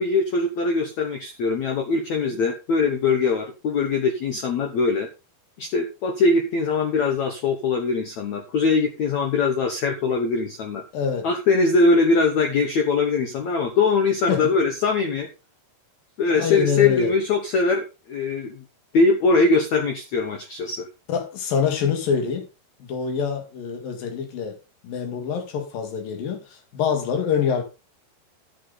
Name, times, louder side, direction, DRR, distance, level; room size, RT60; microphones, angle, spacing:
voice 1, 0.0-5.1 5.6-10.8 11.2-15.3 16.2-18.6 18.9-20.9, left 3 dB, 75° left, 1.6 m, -22 dB
voice 2, 10.9-11.3 14.3-14.4 16.4-17.1 21.1-22.4 22.8-24.6 24.8-27.6, left 7 dB, 60° left, 3.4 m, -25 dB
11.0 x 8.3 x 3.9 m
omnidirectional pair, 5.1 m